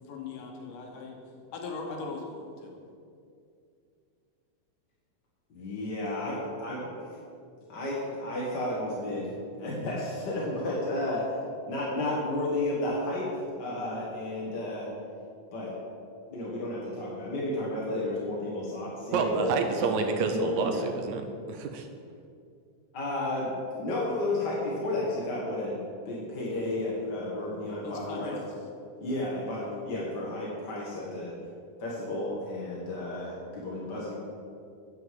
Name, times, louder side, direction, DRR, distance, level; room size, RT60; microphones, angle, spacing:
voice 1, 0.1-1.2 1.5-2.8 27.8-28.4, left 4 dB, 70° left, 1 dB, 2.7 m, -39 dB
voice 2, 5.5-7.1 7.7-9.3 9.6-11.2 11.7-13.3 13.6-14.9 15.5-15.7 16.3-19.9 20.3-20.8 22.9-25.8 26.0-28.3 29.0-31.3 31.8-34.1, left 1 dB, 40° left, -5 dB, 1.6 m, -32 dB
voice 3, 19.1-21.9, right 4 dB, 75° right, 5 dB, 1.8 m, -29 dB
9.3 x 7.4 x 7.6 m, 2.4 s
omnidirectional pair, 4.0 m